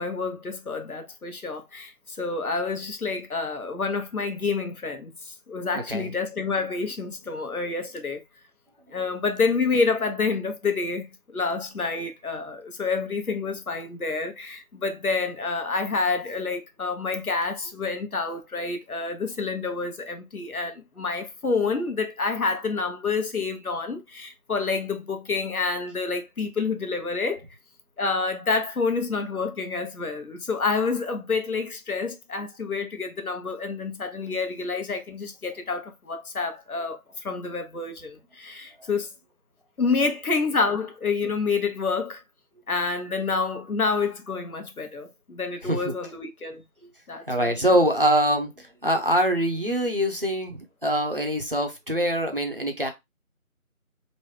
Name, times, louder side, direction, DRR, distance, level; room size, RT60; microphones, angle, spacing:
voice 1, 0.0-8.2 8.9-27.4 28.0-39.1 39.8-42.2 42.7-46.6 47.1-47.7, left 4 dB, 85° left, 1.1 m, -28 dB
voice 2, 45.6-45.9 47.3-52.9, equal, 40° right, 0.6 m, -24 dB
3.1 x 2.6 x 3.1 m
figure-of-eight pair, 175°, 42 cm